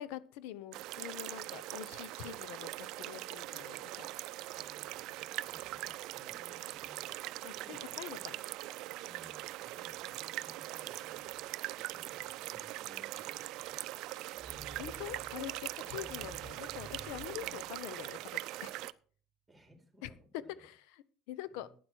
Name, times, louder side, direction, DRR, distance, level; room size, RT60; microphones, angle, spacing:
voice 1, 0.0-4.1 7.4-8.3 14.7-18.8 20.0-20.1 20.6-21.7, left 12 dB, 80° left, 16 dB, 0.9 m, -45 dB
sound 1, 0.7-18.9, right 17 dB, 65° right, 0.5 m, -42 dB
voice 2, 4.4-7.1 7.6-8.3 9.0-11.5 11.8-13.8 15.8-16.1 17.3-17.7 19.5-20.7 21.5-21.8, equal, 10° right, 3 dB, 3.5 m, -61 dB
sound 2, 14.4-18.4, right 2 dB, 30° right, 2.6 m, -52 dB
12.0 x 9.4 x 4.6 m, 0.43 s
supercardioid pair, 115°, 0 cm